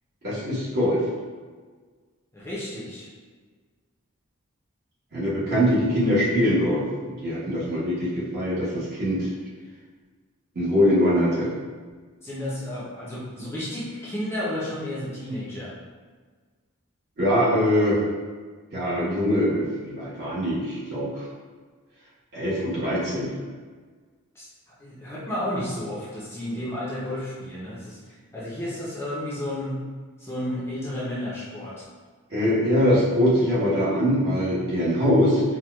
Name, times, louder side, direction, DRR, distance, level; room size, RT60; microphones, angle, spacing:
voice 1, 0.2-1.0 5.1-6.9 7.2-9.3 10.5-11.5 17.2-18.0 18.7-21.2 22.3-23.3 32.3-35.4, equal, 50° right, -8 dB, 1.0 m, -22 dB
voice 2, 2.3-3.1 12.2-15.7 24.3-24.5 24.8-29.8 30.2-31.8, left 1 dB, 10° left, -8 dB, 0.5 m, -32 dB
4.3 x 2.2 x 2.2 m, 1.5 s
head